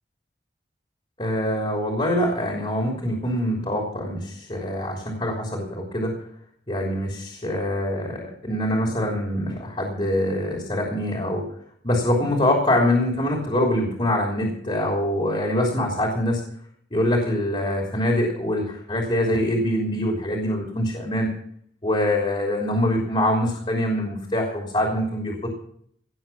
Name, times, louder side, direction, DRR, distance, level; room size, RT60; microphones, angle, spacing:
voice 1, 1.2-6.1 6.7-11.5 11.8-16.4 16.9-21.3 21.8-25.5, left 1 dB, 30° left, -1 dB, 3.1 m, -24 dB
18.0 x 7.4 x 7.3 m, 0.63 s
head